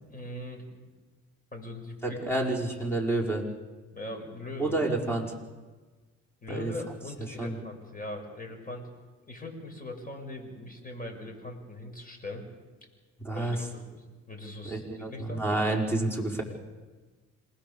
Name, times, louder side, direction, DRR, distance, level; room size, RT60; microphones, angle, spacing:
voice 1, 0.1-0.6 1.5-2.5 3.9-4.8 6.4-8.9 9.3-12.4 13.3-15.5, left 2 dB, 30° left, 3 dB, 6.7 m, -41 dB
voice 2, 2.0-3.4 4.6-5.3 6.5-6.7 7.4-7.6 13.2-13.6 14.6-16.4, right 2 dB, 10° left, -1 dB, 5.5 m, -29 dB
27.5 x 20.0 x 7.2 m, 1.3 s
cardioid pair, 90°, 30 cm